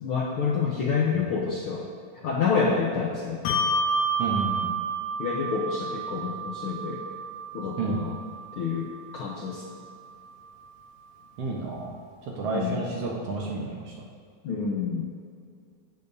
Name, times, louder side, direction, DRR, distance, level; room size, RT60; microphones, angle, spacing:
voice 1, 0.0-1.9 2.2-3.6 5.2-7.0 7.5-8.2 8.6-9.6 12.5-12.8 14.4-15.1, left 5 dB, 70° left, -2 dB, 1.3 m, -28 dB
Bell, 3.5-10.3, right 2 dB, 90° left, 2.3 m, -31 dB
voice 2, 4.2-4.7 7.8-8.0 11.4-11.9 12.2-13.9, right 3 dB, 60° right, -2 dB, 1.9 m, -30 dB
16.5 x 8.9 x 2.7 m, 2.2 s
omnidirectional pair, 3.5 m